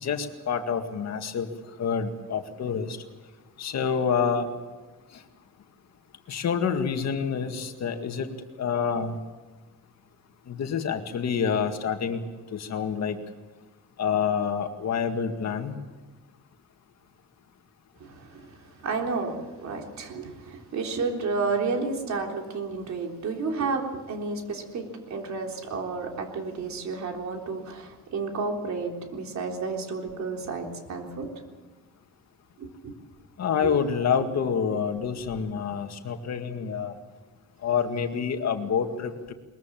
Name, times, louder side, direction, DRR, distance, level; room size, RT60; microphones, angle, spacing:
voice 1, 0.0-1.5 1.8-3.0 3.6-4.5 6.3-8.3 8.6-9.2 10.5-12.2 12.5-13.2 14.0-15.8 33.4-36.9 37.6-39.3, left 6 dB, 60° left, 6 dB, 2.0 m, -27 dB
voice 2, 18.0-18.6 18.8-31.3 32.6-32.9 33.6-33.7, right 4 dB, 60° right, 2 dB, 3.7 m, -31 dB
22.0 x 21.5 x 7.5 m, 1.3 s
cardioid pair, 145°, 31 cm